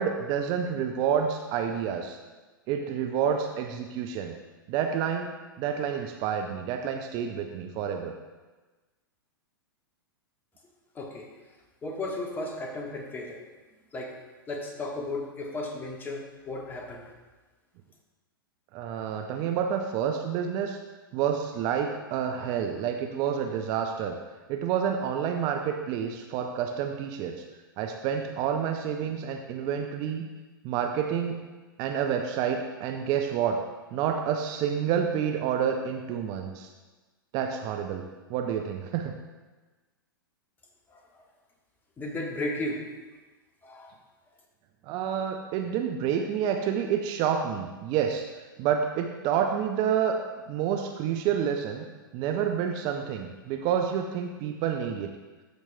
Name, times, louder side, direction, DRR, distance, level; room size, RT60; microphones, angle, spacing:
voice 1, 0.0-2.2 2.7-4.4 4.7-8.1 18.7-20.8 21.1-24.2 24.5-27.4 27.8-30.2 30.6-31.4 31.8-33.6 33.9-36.7 37.3-39.2 44.8-48.3 48.6-50.2 50.5-51.9 52.1-55.1, right 8 dB, 35° right, 4 dB, 0.6 m, -29 dB
voice 2, 10.9-11.3 11.8-13.4 13.9-14.2 14.5-17.0 40.9-41.2 42.0-42.9 43.6-44.0, left 2 dB, 15° left, 1 dB, 1.3 m, -35 dB
13.0 x 6.2 x 2.7 m, 1.2 s
figure-of-eight pair, 105°, 12 cm